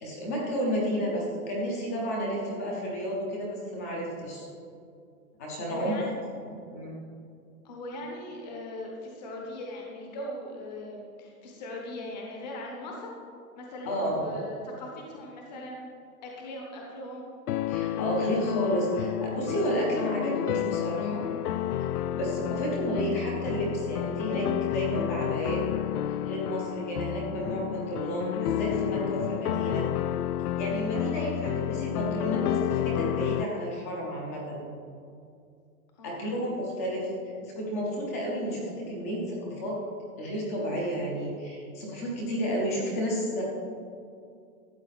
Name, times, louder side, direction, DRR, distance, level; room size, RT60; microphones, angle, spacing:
voice 1, 0.0-4.5 5.4-5.9 6.4-7.0 13.8-14.4 17.7-21.2 21.8-25.6 26.2-29.9 30.6-34.7 36.0-37.1 37.4-39.7 40.2-43.4, equal, 10° left, -3 dB, 0.7 m, -31 dB
voice 2, 2.2-2.5 5.7-6.1 7.6-13.1 13.6-15.9 16.2-17.3 22.1-22.3 30.9-31.4 36.0-36.4, left 1 dB, 30° left, -1 dB, 1.1 m, -40 dB
sound 1, 17.5-33.4, left 12 dB, 85° left, 0.5 m, -30 dB
13.0 x 8.0 x 4.0 m, 2.4 s
hypercardioid pair, 180°, 45 cm